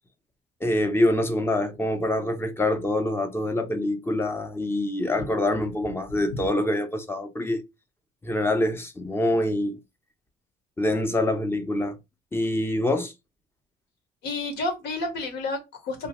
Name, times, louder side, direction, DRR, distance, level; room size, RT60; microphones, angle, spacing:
voice 1, 0.6-7.6 8.2-9.8 10.8-12.0 12.3-13.1, left 1 dB, 15° left, 0.5 m, -25 dB
voice 2, 14.2-16.1, left 2 dB, 80° left, 1.0 m, -30 dB
2.8 x 2.0 x 3.0 m
cardioid pair, 110°, 17 cm